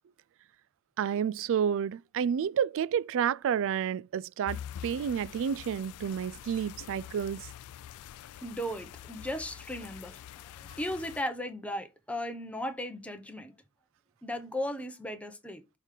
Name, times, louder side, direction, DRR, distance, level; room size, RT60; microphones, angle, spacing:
voice 1, 1.0-7.5, right 8 dB, 60° right, 0.3 m, -30 dB
sound 1, 4.5-11.2, left 10 dB, 80° left, 0.3 m, -45 dB
voice 2, 8.4-13.5 14.2-15.6, left 1 dB, 5° left, 1.1 m, -36 dB
6.4 x 4.9 x 3.7 m
head